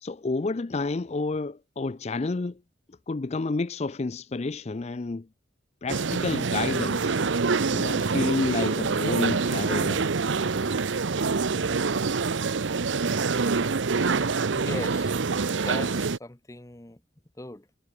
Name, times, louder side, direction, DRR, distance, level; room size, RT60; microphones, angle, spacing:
voice 1, 0.0-2.6 3.1-5.3 5.8-7.2 7.7-10.1, left 3 dB, 35° left, 0.4 m, -30 dB
sound 1, 5.9-16.2, right 4 dB, 75° right, 0.7 m, -26 dB
voice 2, 14.6-15.2 15.6-17.0 17.4-17.7, left 1 dB, 15° left, 0.8 m, -38 dB
head